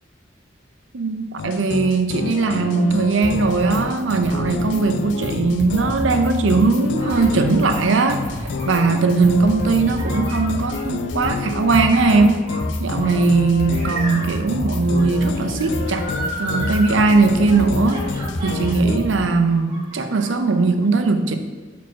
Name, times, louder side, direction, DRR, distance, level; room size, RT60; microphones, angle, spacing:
voice 1, 0.9-8.3 8.7-12.5 12.8-16.1 16.4-21.4, right 3 dB, 85° right, 7 dB, 0.6 m, -19 dB
sound 1, 1.4-19.0, left 5 dB, 70° left, 0.3 m, -30 dB
sound 2, 3.2-3.8 4.1-4.8 5.1-7.8 8.1-19.2, left 1 dB, 55° left, 0.9 m, -29 dB
sound 3, 7.0-19.2 19.4-20.3, right 1 dB, 20° right, 1.5 m, -35 dB
7.1 x 4.4 x 4.5 m, 1.3 s
head